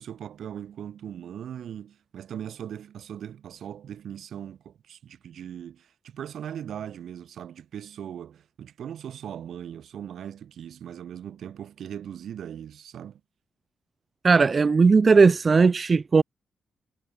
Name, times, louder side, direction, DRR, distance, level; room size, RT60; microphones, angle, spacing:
voice 1, 0.0-13.2, right 9 dB, 70° right, 7.1 m, -39 dB
voice 2, 14.2-16.2, right 4 dB, 35° right, 0.3 m, -17 dB
cardioid pair, 125°, 0 cm